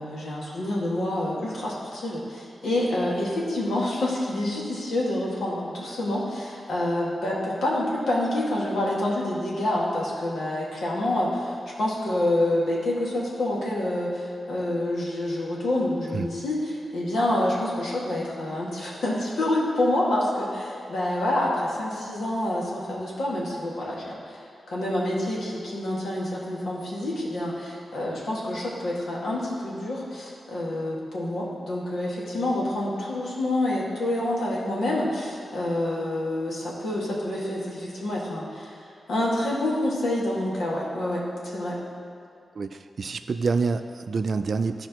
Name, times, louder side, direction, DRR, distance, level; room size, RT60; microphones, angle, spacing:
voice 1, 0.0-38.7 39.1-41.8, left 1 dB, 80° left, -5 dB, 2.0 m, -27 dB
voice 2, 42.6-44.9, right 4 dB, 50° right, 9 dB, 0.4 m, -27 dB
14.5 x 5.0 x 3.1 m, 2.6 s
wide cardioid pair, 135°, 0 cm